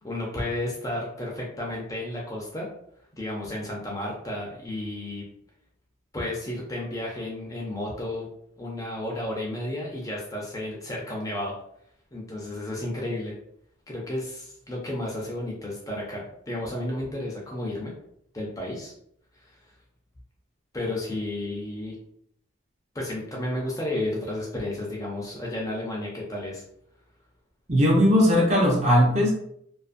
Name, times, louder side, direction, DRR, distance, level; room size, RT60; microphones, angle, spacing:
voice 1, 0.0-2.7 3.2-5.3 6.1-8.3 8.6-11.5 12.1-13.3 13.9-17.9 18.3-18.9 20.7-22.0 22.9-26.6, left 1 dB, 15° left, -3 dB, 0.4 m, -32 dB
voice 2, 27.7-29.3, equal, 35° right, -2 dB, 0.6 m, -19 dB
2.4 x 2.4 x 2.5 m, 0.70 s
head